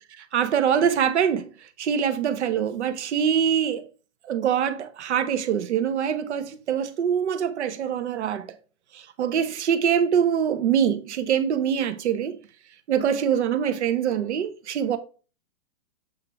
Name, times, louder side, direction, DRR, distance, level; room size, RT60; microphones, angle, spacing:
voice 1, 0.2-1.5 1.8-3.9 4.2-8.5 8.9-12.4 12.9-15.0, right 8 dB, 55° right, 1.0 m, -24 dB
7.8 x 3.8 x 4.5 m
hypercardioid pair, 165°, 40 cm